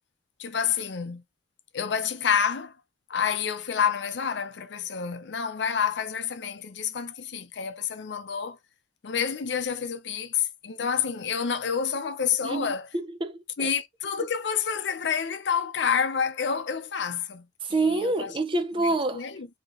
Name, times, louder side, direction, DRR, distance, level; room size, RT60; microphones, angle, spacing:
voice 1, 0.4-1.2 1.7-2.8 3.1-8.6 9.0-12.9 13.6-17.5 17.9-18.3 18.8-19.5, left 7 dB, 65° left, 0.6 m, -28 dB
voice 2, 12.4-13.7 17.6-19.2, right 2 dB, 30° right, 0.5 m, -27 dB
3.7 x 2.9 x 2.9 m
head